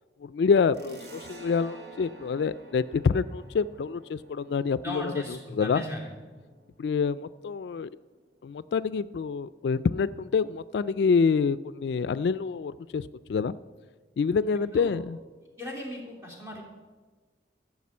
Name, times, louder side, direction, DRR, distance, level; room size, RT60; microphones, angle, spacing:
voice 1, 0.2-5.8 6.8-7.9 8.4-13.6 14.2-15.2, left 5 dB, 70° left, 16 dB, 0.3 m, -27 dB
sound 1, 0.7-7.9, right 2 dB, 60° right, 1.5 m, -51 dB
voice 2, 4.8-6.1 14.7-14.9 15.6-16.6, left 1 dB, 15° right, -2 dB, 3.0 m, -37 dB
13.5 x 6.0 x 8.5 m, 1.4 s
head